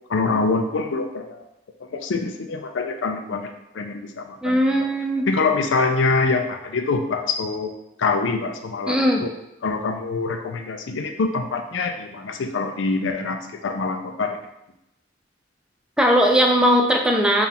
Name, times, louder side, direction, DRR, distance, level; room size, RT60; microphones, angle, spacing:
voice 1, 0.1-1.4 1.9-4.9 5.3-7.7 8.0-9.3 9.6-14.4, left 4 dB, 70° left, 5 dB, 0.4 m, -25 dB
voice 2, 4.4-5.3 8.9-9.3 16.0-17.5, equal, 5° right, 1 dB, 0.4 m, -18 dB
4.6 x 2.4 x 3.4 m, 0.85 s
head